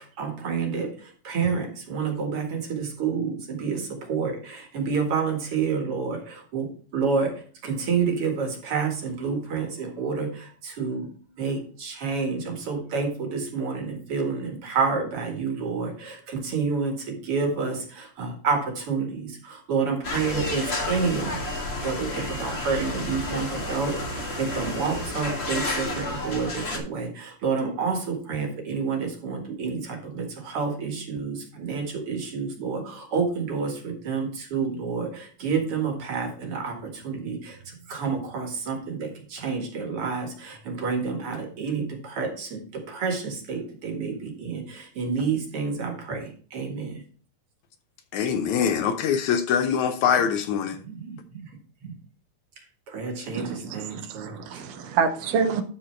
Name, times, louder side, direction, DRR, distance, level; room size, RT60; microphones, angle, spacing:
voice 1, 0.2-11.1 11.4-21.4 21.8-47.0 50.6-51.5 51.8-51.9 52.9-54.6, right 5 dB, 50° right, 2.4 m, -29 dB
sound 1, 20.0-26.8, left 2 dB, 30° left, 1.3 m, -31 dB
voice 2, 48.1-50.8, left 7 dB, 75° left, 1.9 m, -23 dB
voice 3, 53.3-55.6, right 6 dB, 80° right, 2.5 m, -27 dB
13.0 x 4.5 x 4.4 m
omnidirectional pair, 3.7 m